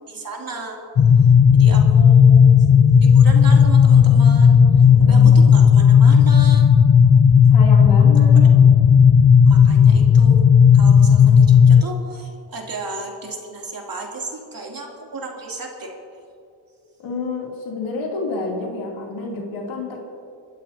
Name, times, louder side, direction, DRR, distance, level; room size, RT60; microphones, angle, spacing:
voice 1, 0.0-0.8 1.5-2.5 3.0-6.7 8.4-8.5 9.4-16.0, right 3 dB, 45° right, -1 dB, 3.2 m, -34 dB
sound 1, 1.0-11.8, left 7 dB, 35° left, 0.5 m, -12 dB
voice 2, 4.9-5.3 7.5-8.5 17.0-20.0, left 3 dB, 80° left, -2 dB, 3.2 m, -29 dB
28.5 x 13.0 x 2.9 m, 2.4 s
cardioid pair, 60°, 47 cm